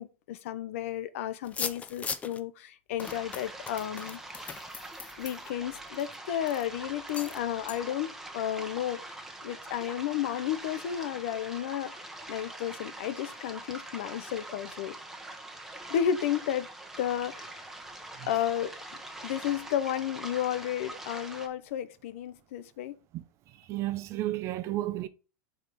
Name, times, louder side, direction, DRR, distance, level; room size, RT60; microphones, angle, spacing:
voice 1, 0.0-4.2 5.2-11.9 12.3-15.0 15.9-16.7 17.0-17.7 18.3-18.8 19.2-22.9, left 10 dB, 70° left, 0.8 m, -32 dB
sound 1, 1.4-2.4 3.0-6.1 6.5-6.7 7.1-7.4 7.7-7.8, left 5 dB, 20° left, 0.6 m, -39 dB
sound 2, 3.0-21.5, right 1 dB, 5° right, 1.1 m, -44 dB
voice 2, 23.5-25.1, right 15 dB, 40° right, 0.7 m, -32 dB
4.8 x 4.5 x 5.1 m
supercardioid pair, 125°, 7 cm